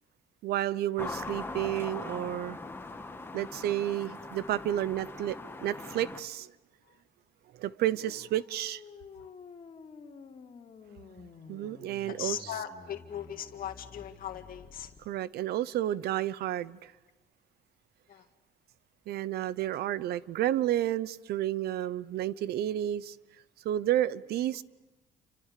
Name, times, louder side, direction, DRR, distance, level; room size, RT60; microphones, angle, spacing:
voice 1, 0.4-2.6 3.3-6.5 7.6-8.8 11.5-12.5 15.0-16.9 19.1-23.2 23.6-24.6, right 12 dB, 70° right, 0.8 m, -31 dB
sound 1, 1.0-6.2, left 3 dB, 15° left, 1.7 m, -41 dB
sound 2, 7.9-15.0, left 5 dB, 40° left, 3.1 m, -51 dB
voice 2, 12.1-14.9 18.1-18.2, left 9 dB, 60° left, 2.0 m, -39 dB
29.5 x 25.5 x 6.7 m
cardioid pair, 110°, 17 cm